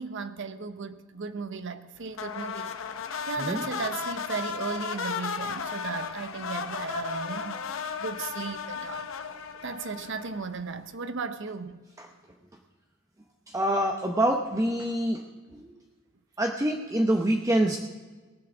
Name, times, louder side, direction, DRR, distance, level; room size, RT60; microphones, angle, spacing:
voice 1, 0.0-2.7 3.3-7.6 8.0-9.1 9.6-11.8, right 4 dB, 65° right, 11 dB, 0.8 m, -35 dB
sound 1, 2.1-10.6, left 6 dB, 70° left, 0.8 m, -35 dB
voice 2, 13.5-15.2 16.4-17.8, right 1 dB, 15° right, 2 dB, 0.7 m, -25 dB
18.5 x 7.6 x 6.2 m, 1.3 s
head